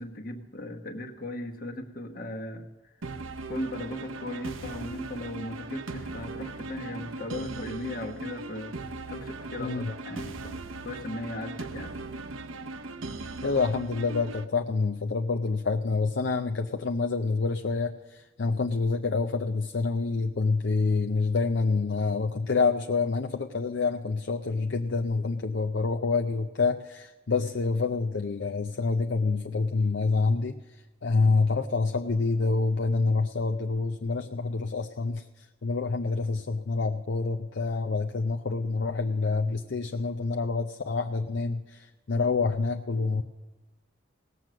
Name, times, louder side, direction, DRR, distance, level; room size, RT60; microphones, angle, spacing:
voice 1, 0.0-2.7 3.5-8.8 9.1-11.9, left 1 dB, 45° left, 3 dB, 1.2 m, -37 dB
sound 1, 3.0-14.4, right 3 dB, 85° right, 0.8 m, -38 dB
voice 2, 9.6-9.9 13.4-30.6 31.0-35.3 35.6-43.2, left 4 dB, 65° left, 5 dB, 0.5 m, -27 dB
18.0 x 7.6 x 6.3 m, 1.2 s
head